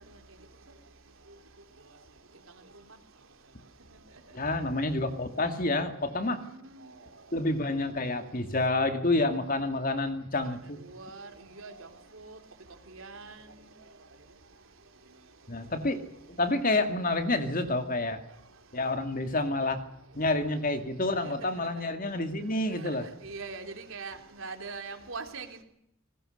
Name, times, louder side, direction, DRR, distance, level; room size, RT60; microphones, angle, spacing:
voice 1, 4.3-6.4 7.3-10.8 15.5-16.0 16.4-18.2 18.7-19.8 20.1-23.0, left 2 dB, 40° left, 7 dB, 2.4 m, -28 dB
voice 2, 10.9-11.3 11.6-11.7 12.1-12.4 12.9-13.4 21.2-21.7 22.8-22.9 23.2-25.6, right 4 dB, 70° right, 5 dB, 3.5 m, -41 dB
28.0 x 20.5 x 6.7 m, 0.76 s
head